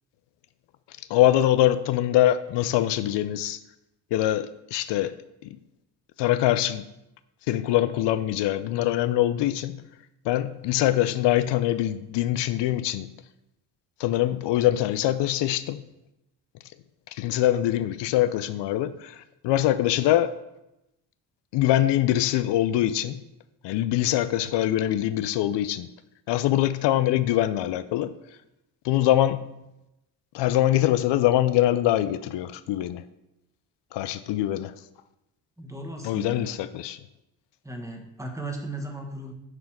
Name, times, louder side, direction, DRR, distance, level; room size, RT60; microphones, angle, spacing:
voice 1, 1.1-3.6 4.1-5.1 5.4-5.5 6.2-6.8 7.5-9.8 10.3-13.1 14.0-15.8 17.1-20.3 21.5-23.2 23.6-25.9 26.3-28.1 28.8-29.5 30.3-33.0 33.9-34.7 36.0-37.0, left 13 dB, 75° left, 13 dB, 0.5 m, -23 dB
voice 2, 35.6-36.6 37.6-39.3, right 2 dB, 5° right, 2 dB, 1.6 m, -36 dB
7.4 x 4.0 x 6.4 m, 0.90 s
cardioid pair, 80°, 42 cm